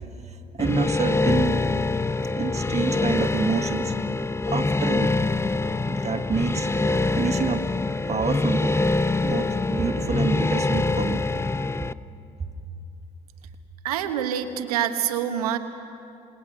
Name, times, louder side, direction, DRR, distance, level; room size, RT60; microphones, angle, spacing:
sound 1, 0.6-11.9, left 3 dB, 15° left, 0.6 m, -24 dB
voice 1, 0.6-1.6 2.4-3.9 4.5-5.2 5.9-6.7 7.2-7.7 8.1-8.8 9.2-11.2 12.4-12.5, right 5 dB, 35° right, 5 dB, 2.1 m, -27 dB
voice 2, 13.8-15.6, right 10 dB, 90° right, 8 dB, 1.2 m, -26 dB
28.0 x 19.5 x 6.7 m, 2.7 s
hypercardioid pair, 55°, 19 cm